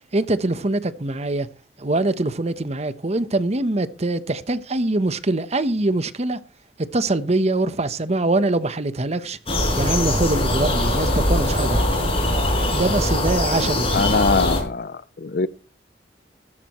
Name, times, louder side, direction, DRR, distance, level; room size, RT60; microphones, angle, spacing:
voice 1, 0.1-1.5 1.8-6.4 6.9-9.4 9.8-12.2 12.7-14.0, right 2 dB, 40° right, 0.9 m, -23 dB
sound 1, 9.5-14.6, left 1 dB, 35° left, 5.3 m, -21 dB
voice 2, 13.9-15.5, left 4 dB, 55° left, 0.6 m, -22 dB
15.0 x 13.5 x 3.1 m
head